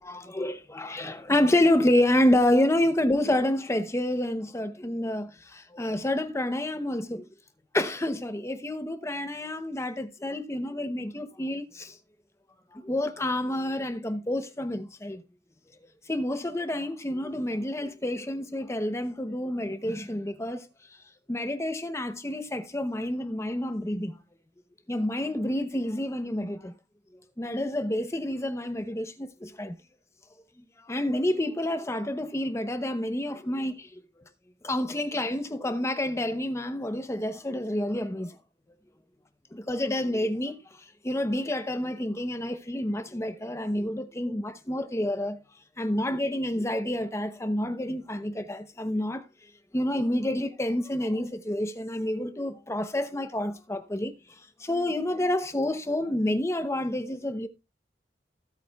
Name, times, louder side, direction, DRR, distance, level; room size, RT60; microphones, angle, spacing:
voice 1, 0.0-7.2 7.7-12.0 12.7-15.2 16.1-20.7 21.3-24.2 24.9-26.7 27.4-29.8 30.8-34.0 34.6-38.4 39.5-40.6 41.0-45.4 45.8-49.2 49.7-54.1 54.6-57.5, left 1 dB, 15° left, 0.7 m, -28 dB
15.5 x 8.5 x 2.3 m
head